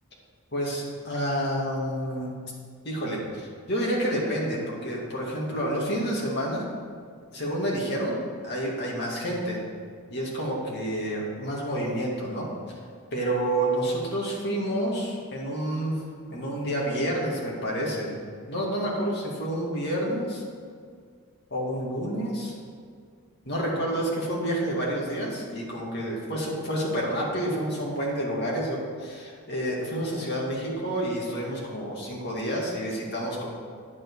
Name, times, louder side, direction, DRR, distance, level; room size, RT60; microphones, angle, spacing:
voice 1, 0.5-2.3 2.8-6.7 7.3-8.2 8.4-9.6 10.1-12.5 13.1-16.0 16.3-18.1 18.5-20.4 21.5-22.5 23.5-33.5, right 1 dB, 50° left, -3 dB, 2.1 m, -29 dB
9.5 x 7.8 x 4.7 m, 2.1 s
head